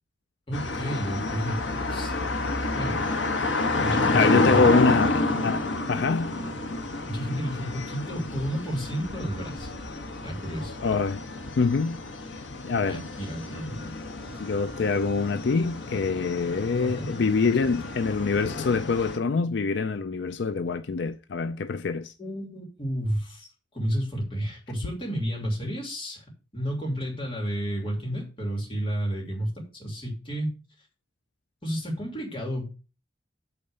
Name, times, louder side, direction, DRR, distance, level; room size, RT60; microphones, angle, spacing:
sound 1, 0.5-19.2, left 2 dB, 85° left, 1.3 m, -30 dB
voice 1, 0.5-2.2 2.7-3.0 3.8-4.6 7.1-9.7 10.2-10.8 12.9-13.8 16.8-17.1 22.2-23.5 23.7-26.2 26.5-30.5 31.6-32.7, equal, 30° left, 2.8 m, -31 dB
voice 2, 4.1-6.3 10.8-11.2 11.6-12.0 12.6-13.1 14.4-22.1, left 4 dB, 70° left, 0.4 m, -25 dB
8.7 x 4.0 x 6.6 m
head